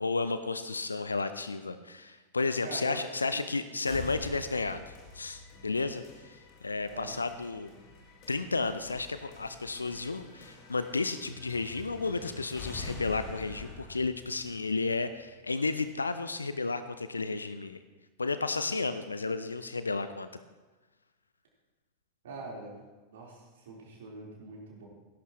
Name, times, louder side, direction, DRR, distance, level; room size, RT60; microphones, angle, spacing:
voice 1, 0.0-7.7 8.3-17.8 18.2-20.3, left 3 dB, 80° left, 12 dB, 0.5 m, -32 dB
voice 2, 2.6-3.0 3.3-3.4 3.8-3.9 6.9-7.2 22.2-22.8 23.1-24.8, right 2 dB, 60° right, -4 dB, 4.0 m, -44 dB
sound 1, 3.9-15.8, left 3 dB, 45° left, 2.2 m, -47 dB
18.0 x 11.0 x 3.1 m, 1.2 s
figure-of-eight pair, 90°, 0 cm